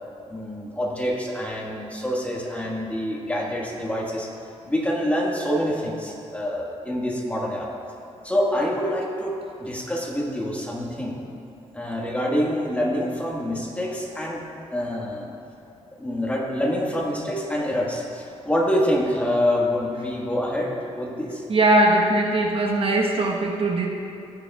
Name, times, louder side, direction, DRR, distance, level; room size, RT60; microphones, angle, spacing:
voice 1, 0.3-4.3 4.6-7.7 8.2-9.3 9.6-11.3 11.7-14.4 14.7-15.3 16.0-21.4, equal, 10° left, -3 dB, 1.6 m, -26 dB
voice 2, 21.5-23.9, right 2 dB, 50° right, -1 dB, 1.2 m, -20 dB
18.5 x 7.1 x 2.4 m, 2.9 s
cardioid pair, 100°, 12 cm